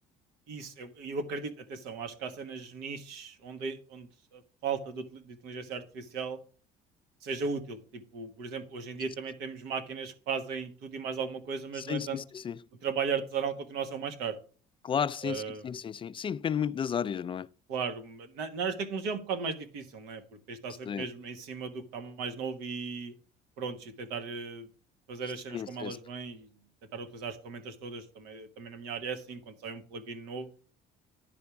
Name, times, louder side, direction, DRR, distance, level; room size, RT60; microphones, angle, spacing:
voice 1, 0.5-6.4 7.2-12.2 12.8-14.4 15.2-15.7 17.7-23.1 23.6-24.7 25.1-26.5 26.9-30.5, right 5 dB, 85° right, 1.3 m, -36 dB
voice 2, 11.7-12.6 14.8-17.5 20.9-21.1 25.5-26.0, left 7 dB, 30° left, 0.4 m, -33 dB
10.5 x 3.5 x 7.0 m
cardioid pair, 100°, 16 cm